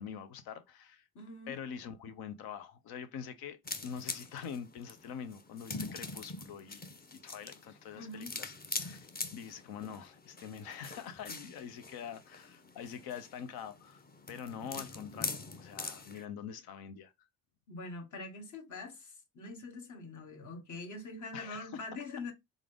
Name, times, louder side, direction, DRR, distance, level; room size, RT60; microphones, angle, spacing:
voice 1, 0.0-1.0 1.5-6.8 7.1-8.5 8.8-17.1 21.3-21.7, left 7 dB, 85° left, 0.8 m, -45 dB
voice 2, 1.1-1.6 7.9-8.3 17.7-22.3, left 3 dB, 55° left, 1.5 m, -44 dB
sound 1, 3.6-16.2, left 3 dB, 25° left, 0.8 m, -43 dB
3.9 x 3.7 x 3.5 m
supercardioid pair, 70°, 36 cm